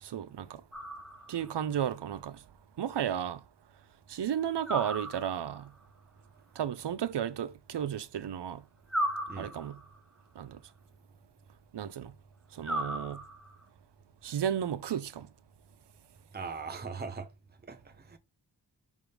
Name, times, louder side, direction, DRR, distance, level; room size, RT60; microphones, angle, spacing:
voice 1, 0.0-0.6 1.3-2.4 2.8-3.4 4.1-5.7 6.6-8.6 9.4-9.8 10.4-10.6 11.7-12.1 12.5-13.2 14.2-15.3, right 9 dB, 75° right, 0.7 m, -33 dB
sound 1, 0.7-1.6 4.6-5.7 8.9-10.0 12.6-13.6, right 1 dB, ahead, 1.1 m, -36 dB
voice 2, 16.3-17.3 17.7-18.2, right 4 dB, 25° right, 0.9 m, -40 dB
6.1 x 3.6 x 5.0 m
wide cardioid pair, 95°, 41 cm